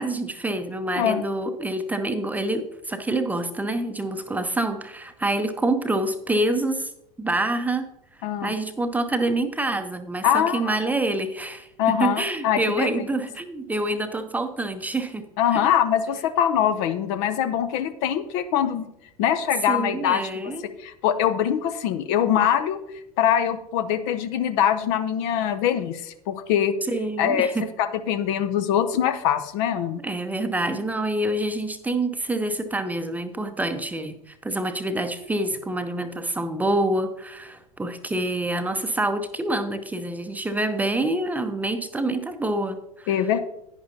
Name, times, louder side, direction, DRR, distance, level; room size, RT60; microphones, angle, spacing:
voice 1, 0.0-6.9 7.2-7.9 8.4-15.2 15.5-15.7 19.7-20.8 26.9-27.7 30.0-43.1, right 2 dB, 10° right, 7 dB, 0.7 m, -27 dB
voice 2, 8.2-8.5 10.2-10.8 11.8-12.9 15.4-18.9 19.2-20.2 20.8-22.8 23.2-26.8 27.2-27.5 27.8-30.0 43.1-43.4, left 9 dB, 50° left, 11 dB, 0.7 m, -23 dB
11.0 x 9.7 x 2.8 m, 0.81 s
figure-of-eight pair, 80°, 20 cm